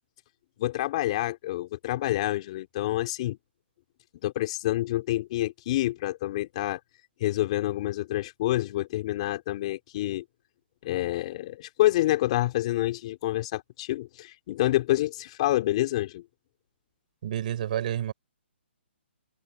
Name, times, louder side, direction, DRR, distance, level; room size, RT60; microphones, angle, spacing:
voice 1, 0.6-3.4 4.2-6.8 7.2-10.2 10.8-16.2, left 15 dB, 30° left, 3.6 m, -27 dB
voice 2, 17.2-18.1, right 11 dB, 40° right, 7.7 m, -29 dB
hypercardioid pair, 160°, 6 cm